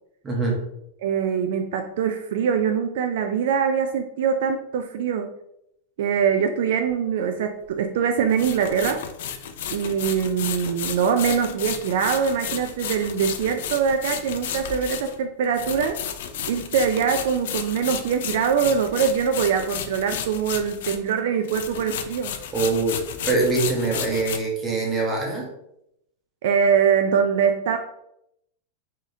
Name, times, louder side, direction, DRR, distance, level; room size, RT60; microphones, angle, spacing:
voice 1, 0.2-0.5 22.5-23.0 23.3-25.4, right 3 dB, 15° right, -1 dB, 0.9 m, -23 dB
voice 2, 1.0-5.3 6.0-9.0 9.7-16.0 16.5-22.3 26.4-27.8, right 7 dB, 60° right, 6 dB, 0.3 m, -23 dB
sound 1, 6.9-7.0 8.3-21.2 21.4-24.4, left 8 dB, 65° left, 0.4 m, -33 dB
4.9 x 2.8 x 2.7 m, 0.78 s
supercardioid pair, 170°, 0 cm